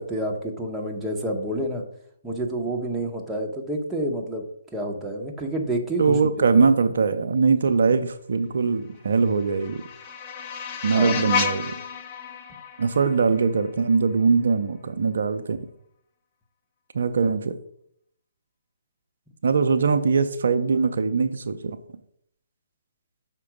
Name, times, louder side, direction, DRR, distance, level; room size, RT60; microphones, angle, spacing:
voice 1, 0.0-1.8 2.2-4.4 4.7-6.2 6.5-6.6 10.9-11.2, right 1 dB, 5° right, -1 dB, 1.0 m, -28 dB
voice 2, 6.0-9.8 10.8-11.8 12.8-15.6 16.9-17.6 19.4-21.8, right 5 dB, 65° right, 8 dB, 0.5 m, -21 dB
sound 1, 9.1-14.1, left 7 dB, 30° left, 0.7 m, -31 dB
5.9 x 4.5 x 5.0 m, 0.70 s
figure-of-eight pair, 145°, 0 cm